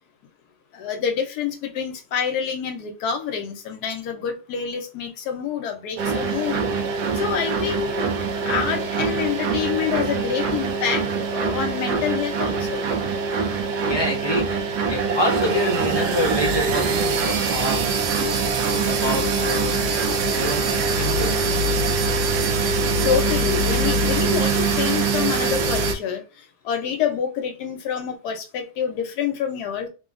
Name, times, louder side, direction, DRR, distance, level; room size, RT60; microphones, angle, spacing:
voice 1, 0.7-6.6 7.1-8.0 8.4-12.9 23.0-29.9, left 8 dB, 70° left, 1.2 m, -27 dB
sound 1, 6.0-25.9, right 4 dB, 75° right, 1.1 m, -23 dB
voice 2, 13.8-17.8 18.1-21.5, left 1 dB, 20° left, 0.7 m, -28 dB
3.1 x 2.2 x 2.4 m
omnidirectional pair, 1.8 m